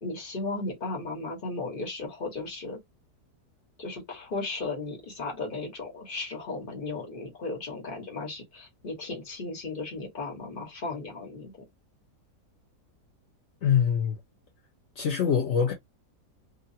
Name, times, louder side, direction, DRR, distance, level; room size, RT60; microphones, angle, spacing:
voice 1, 0.0-2.8 3.8-11.5, left 3 dB, 35° left, 1.3 m, -35 dB
voice 2, 13.6-14.2 15.0-15.7, left 7 dB, 55° left, 0.8 m, -24 dB
2.9 x 2.4 x 2.7 m
omnidirectional pair, 1.8 m